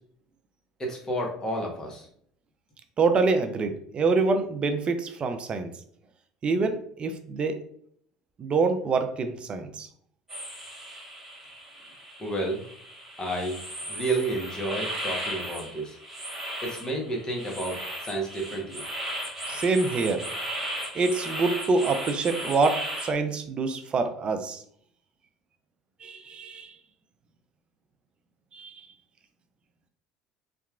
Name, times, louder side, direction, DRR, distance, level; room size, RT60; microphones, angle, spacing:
voice 1, 0.8-2.1 12.2-12.6 13.2-13.6 13.9-16.0 16.6-18.8, right 1 dB, 20° left, 0 dB, 0.9 m, -31 dB
voice 2, 3.0-5.7 6.4-7.6 8.4-9.9 19.5-20.2 20.9-24.6 26.0-26.7 28.5-28.8, right 4 dB, 35° right, 7 dB, 0.4 m, -26 dB
sound 1, 10.3-23.1, equal, 10° right, 1.5 m, -36 dB
2.8 x 2.3 x 2.3 m, 0.63 s
hypercardioid pair, 75°, 3 cm